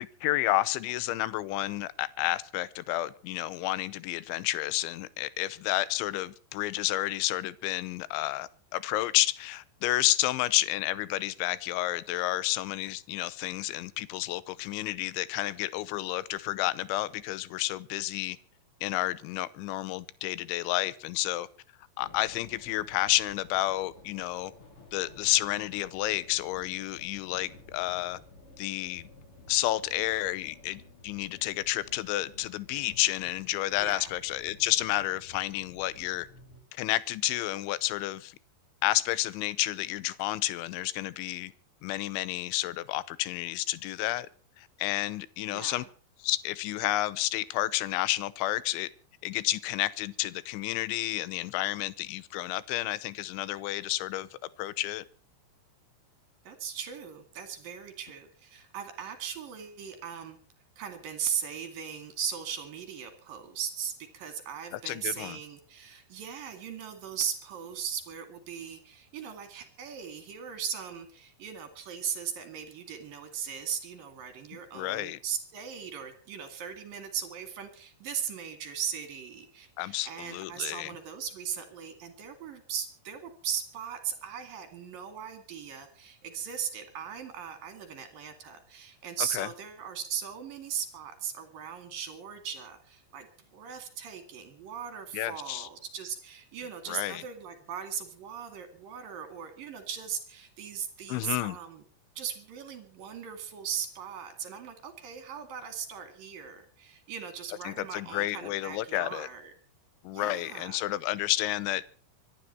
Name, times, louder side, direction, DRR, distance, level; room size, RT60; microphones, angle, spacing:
voice 1, 0.0-18.4 18.8-21.5 22.0-24.5 24.9-28.2 28.6-29.1 29.5-36.3 36.7-38.4 38.8-41.5 41.8-44.3 44.6-45.8 46.2-48.9 49.2-54.3 54.6-55.0 64.7-65.4 74.7-75.2 79.8-81.0 89.3-89.5 95.1-95.7 96.9-97.2 101.1-101.6 107.6-109.3 110.0-111.8, left 16 dB, 80° left, 3.2 m, -30 dB
sound 1, 22.0-36.6, left 2 dB, 30° left, 3.9 m, -53 dB
voice 2, 33.8-34.1 45.5-45.9 56.5-60.4 60.8-93.3 93.5-101.8 102.2-109.5 110.1-110.8, right 8 dB, 55° right, 3.4 m, -38 dB
24.5 x 11.5 x 4.4 m
omnidirectional pair, 5.5 m